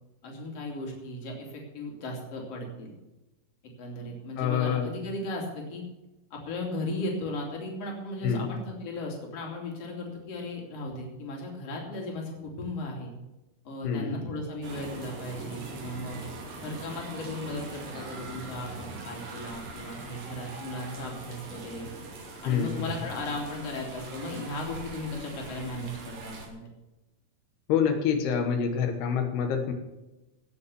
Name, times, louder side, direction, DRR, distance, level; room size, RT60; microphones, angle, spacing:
voice 1, 0.2-2.9 3.8-5.8 6.3-13.1 13.7-16.2 16.6-21.9 22.4-26.7, left 1 dB, 40° left, -1 dB, 3.6 m, -36 dB
voice 2, 4.4-4.9 8.2-8.5 13.8-14.2 22.5-22.9 27.7-29.7, left 7 dB, 90° left, 5 dB, 3.4 m, -27 dB
sound 1, 14.6-26.5, right 2 dB, 60° right, 4.1 m, -42 dB
16.5 x 7.1 x 7.0 m, 1.0 s
omnidirectional pair, 4.5 m